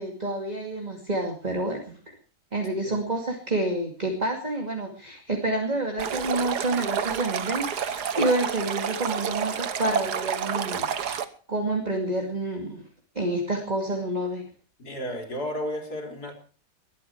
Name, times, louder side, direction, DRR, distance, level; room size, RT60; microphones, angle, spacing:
voice 1, 0.0-2.2 2.5-11.2 11.5-12.8 13.1-14.4, right 2 dB, 25° right, 2 dB, 2.6 m, -28 dB
Stream, 6.0-11.2, right 8 dB, 65° right, 1.7 m, -29 dB
voice 2, 14.8-16.3, equal, 60° left, 3 dB, 4.0 m, -33 dB
21.5 x 12.0 x 4.7 m, 0.39 s
omnidirectional pair, 1.9 m